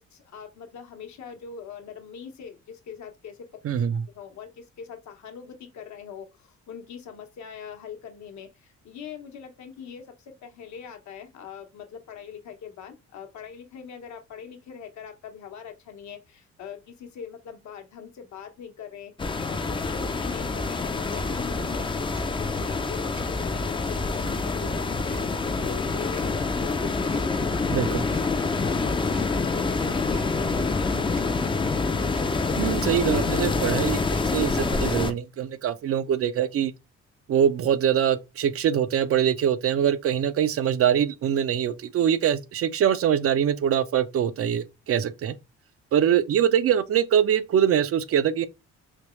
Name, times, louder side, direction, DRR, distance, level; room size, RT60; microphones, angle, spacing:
voice 1, 0.0-3.4 3.9-27.5 28.0-31.2, left 8 dB, 70° left, 0.9 m, -42 dB
voice 2, 3.6-4.0 27.7-28.0 32.6-36.7 37.3-45.3 45.9-48.5, right 9 dB, 50° right, 0.4 m, -23 dB
sound 1, 19.2-35.1, left 3 dB, 15° left, 0.4 m, -26 dB
Tick-tock, 21.1-21.2 22.1-22.3 23.1-23.2 24.1-24.3 25.1-25.3 26.1-26.3 27.1-27.3 28.1-28.3 29.1-29.3 30.1-30.3 31.1-31.2 32.1-32.3 33.1-33.2 34.1-34.3, right 7 dB, 75° right, 1.0 m, -48 dB
3.4 x 3.0 x 3.0 m
cardioid pair, 90°, 30 cm